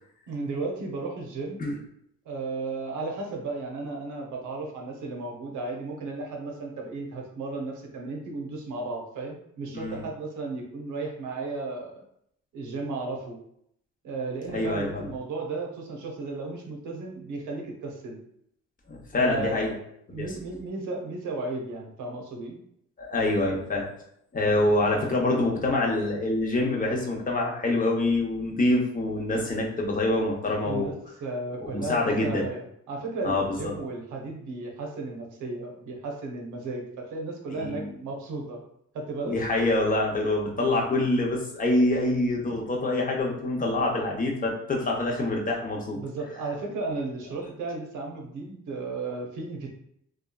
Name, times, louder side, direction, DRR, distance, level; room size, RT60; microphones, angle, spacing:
voice 1, 0.3-1.6 2.2-12.0 12.5-13.4 14.0-18.2 19.2-19.8 20.1-22.6 30.6-30.9 31.2-38.6 38.9-39.4 40.6-40.7 45.9-49.7, right 3 dB, 80° right, 1 dB, 0.7 m, -34 dB
voice 2, 14.5-15.0 18.9-19.7 20.1-20.3 23.0-23.9 24.3-30.9 31.6-32.5 33.2-33.7 37.5-37.9 39.3-46.0, left 2 dB, 25° left, -1 dB, 0.7 m, -26 dB
2.8 x 2.3 x 2.2 m, 0.73 s
cardioid pair, 90°, 30 cm